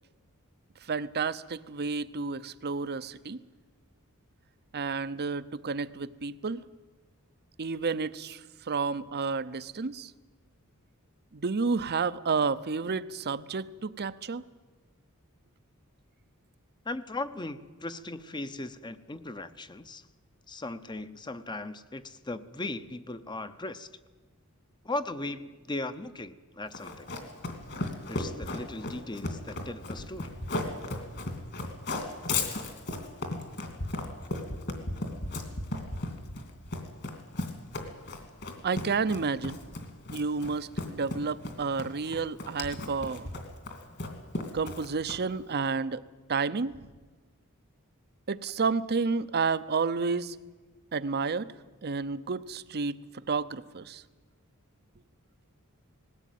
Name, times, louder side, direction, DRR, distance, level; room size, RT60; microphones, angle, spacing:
voice 1, 0.9-3.4 4.7-6.6 7.6-10.1 11.3-14.4 38.6-39.6 40.1-43.3 44.5-46.0 46.3-46.8 48.3-50.4 50.9-51.5 51.8-52.9 53.3-54.0, right 4 dB, 50° right, 16 dB, 0.7 m, -30 dB
voice 2, 16.9-20.0 20.5-23.9 24.8-27.1 28.1-30.4, left 2 dB, 20° left, 12 dB, 0.8 m, -38 dB
Run, 26.7-45.4, left 2 dB, 50° left, 2.9 m, -35 dB
20.0 x 17.0 x 9.3 m, 1.3 s
head